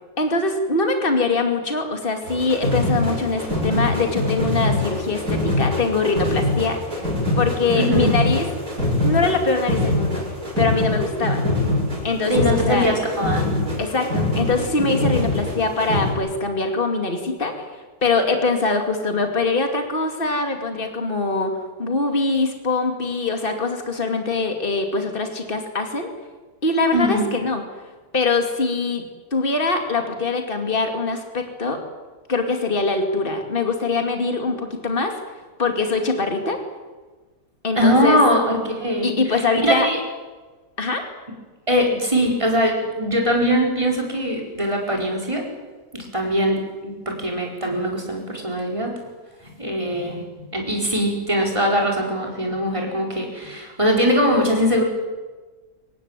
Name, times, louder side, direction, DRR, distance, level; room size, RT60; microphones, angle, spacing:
voice 1, 0.2-8.5 9.0-10.2 10.6-11.4 12.0-13.0 13.8-26.1 26.6-27.6 28.1-29.0 29.3-31.8 32.3-35.2 35.6-36.6 37.6-38.2 39.0-39.9 40.8-41.0, left 3 dB, 35° left, 5 dB, 2.8 m, -23 dB
sound 1, 2.2-16.1, left 1 dB, 65° right, 7.5 m, -23 dB
voice 2, 7.8-8.1 12.3-13.4 26.9-27.3 37.7-40.0 41.7-45.5 45.9-48.9 49.6-50.2 50.5-54.8, equal, 20° right, 0 dB, 5.2 m, -21 dB
24.5 x 19.0 x 9.2 m, 1.3 s
omnidirectional pair, 1.7 m